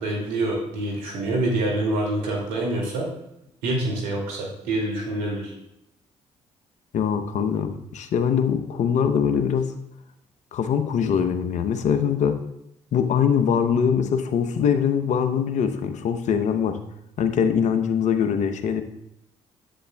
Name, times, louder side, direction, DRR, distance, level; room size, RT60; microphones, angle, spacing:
voice 1, 0.0-3.1 3.6-5.5, right 2 dB, 85° right, -2 dB, 2.4 m, -26 dB
voice 2, 6.9-9.7 10.5-12.4 12.9-16.8 17.2-18.8, left 7 dB, 65° left, 8 dB, 0.8 m, -22 dB
10.0 x 7.9 x 2.3 m, 0.81 s
supercardioid pair, 55°, 13 cm